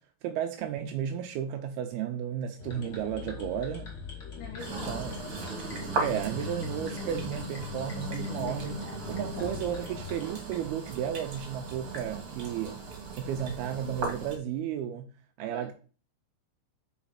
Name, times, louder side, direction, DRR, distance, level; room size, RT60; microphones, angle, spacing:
voice 1, 0.2-3.9 4.7-5.2 6.0-12.8 13.1-15.1 15.4-15.7, right 9 dB, 80° right, 2.4 m, -33 dB
sound 1, 2.6-10.2, left 6 dB, 45° left, 1.5 m, -40 dB
voice 2, 4.4-5.3 9.3-9.8 15.4-15.7, left 5 dB, 70° left, 2.2 m, -45 dB
sound 2, 4.6-14.4, right 4 dB, 45° right, 2.4 m, -38 dB
5.9 x 5.2 x 5.7 m
omnidirectional pair, 5.0 m